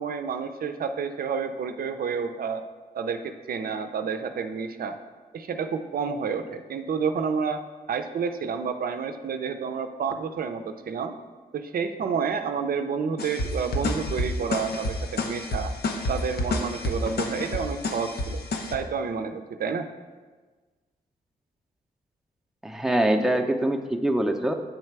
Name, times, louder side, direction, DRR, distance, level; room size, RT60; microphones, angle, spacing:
voice 1, 0.0-2.6 2.9-5.0 5.3-7.6 7.9-11.2 11.5-15.7 16.1-18.4 18.7-19.9, right 6 dB, 65° right, 8 dB, 0.5 m, -29 dB
sound 1, 13.2-18.8, left 1 dB, 75° left, 0.7 m, -29 dB
voice 2, 22.6-24.5, right 1 dB, 5° right, 3 dB, 0.6 m, -24 dB
8.2 x 3.2 x 4.6 m, 1.4 s
cardioid pair, 60°, 16 cm